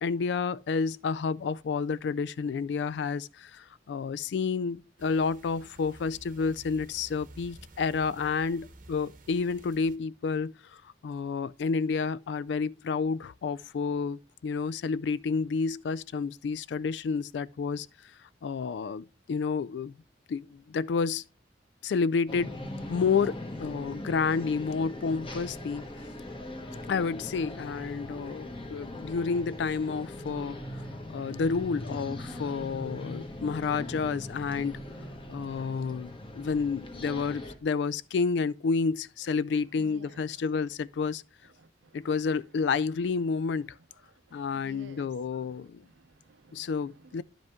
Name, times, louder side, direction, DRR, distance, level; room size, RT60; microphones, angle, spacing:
voice 1, 0.0-17.9 18.4-20.0 20.3-21.2 21.8-22.5 22.9-25.9 26.9-30.6 31.1-34.8 35.3-41.2 41.9-43.7 44.3-45.8 46.5-47.2, left 5 dB, 70° left, 0.3 m, -30 dB
sound 1, 5.0-10.0, right 2 dB, 45° right, 0.9 m, -52 dB
sound 2, 22.3-37.5, left 1 dB, 30° left, 1.2 m, -40 dB
voice 2, 39.8-40.2 41.6-42.3 44.0-47.2, right 3 dB, 80° right, 0.6 m, -55 dB
10.5 x 5.1 x 3.5 m
head